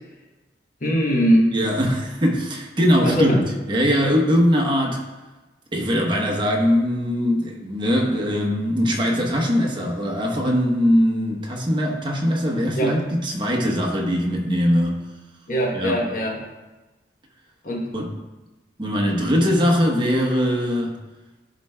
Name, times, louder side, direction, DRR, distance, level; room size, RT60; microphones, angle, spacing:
voice 1, 0.8-1.6 3.0-3.4 12.8-12.9 15.5-16.4 17.6-17.9, equal, 45° left, -1 dB, 1.0 m, -20 dB
voice 2, 1.5-3.4 3.7-5.0 5.7-15.0 15.7-16.0 17.9-18.1 18.8-20.9, equal, 25° right, 0 dB, 0.9 m, -21 dB
11.0 x 4.3 x 2.2 m, 1.2 s
head